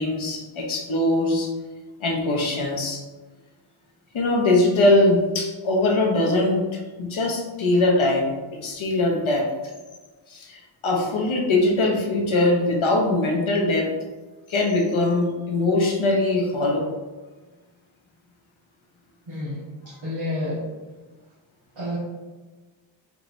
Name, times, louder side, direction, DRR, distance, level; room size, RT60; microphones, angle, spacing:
voice 1, 0.0-1.5 2.0-3.0 4.1-8.4 8.6-9.5 10.3-13.9 14.5-16.9, left 2 dB, 85° left, -1 dB, 0.7 m, -21 dB
voice 2, 19.3-20.6 21.7-22.0, left 1 dB, 70° right, -10 dB, 1.3 m, -30 dB
4.6 x 3.1 x 2.5 m, 1.3 s
wide cardioid pair, 55°, 47 cm